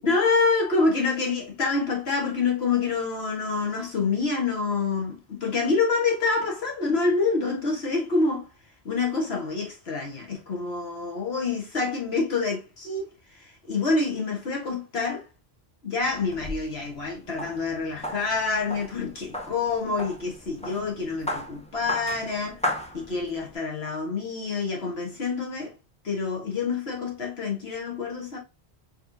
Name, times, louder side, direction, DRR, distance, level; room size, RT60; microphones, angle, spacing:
voice 1, 0.0-8.5 8.8-15.2 15.8-22.6 22.9-25.7 26.0-28.4, left 4 dB, 70° left, 1.7 m, -27 dB
sound 1, 16.0-23.6, left 1 dB, 5° left, 0.7 m, -36 dB
4.2 x 3.4 x 2.7 m
omnidirectional pair, 1.1 m